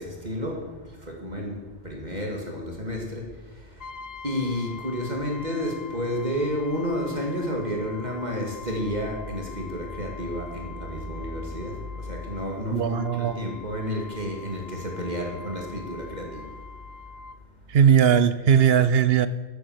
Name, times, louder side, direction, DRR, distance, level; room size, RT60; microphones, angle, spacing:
voice 1, 0.0-3.9 4.2-16.6, left 1 dB, 40° right, 0 dB, 2.6 m, -31 dB
Brass instrument, 3.8-17.4, left 5 dB, 65° left, 1.1 m, -44 dB
voice 2, 12.7-13.4 17.7-19.3, right 8 dB, 65° right, 14 dB, 1.0 m, -19 dB
12.0 x 10.0 x 8.1 m, 1.1 s
omnidirectional pair, 1.1 m